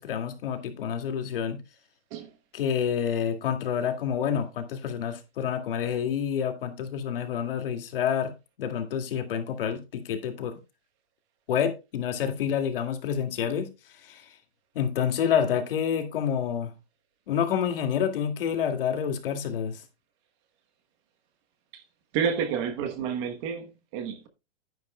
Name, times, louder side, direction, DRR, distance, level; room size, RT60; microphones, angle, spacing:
voice 1, 0.0-1.6 2.5-8.3 8.6-10.6 11.5-13.7 14.0-14.3 14.8-16.7 17.3-19.8, left 8 dB, 55° left, 2.2 m, -28 dB
voice 2, 22.1-24.3, right 7 dB, 25° right, 1.0 m, -29 dB
10.5 x 10.0 x 2.2 m
hypercardioid pair, 160°, 33 cm